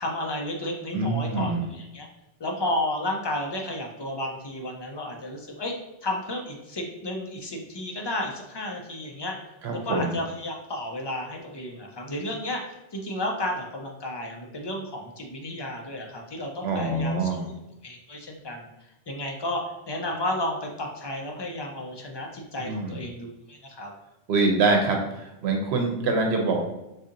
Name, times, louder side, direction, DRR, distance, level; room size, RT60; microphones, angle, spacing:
voice 1, 0.0-2.1 2.4-5.7 6.0-17.5 17.8-18.7 19.1-23.9, left 1 dB, 45° left, 1 dB, 0.3 m, -32 dB
voice 2, 0.9-1.7 9.6-10.1 16.6-17.5 22.6-23.0 24.3-26.6, right 3 dB, 85° right, 2 dB, 0.9 m, -25 dB
4.0 x 2.7 x 2.5 m, 0.94 s
omnidirectional pair, 1.1 m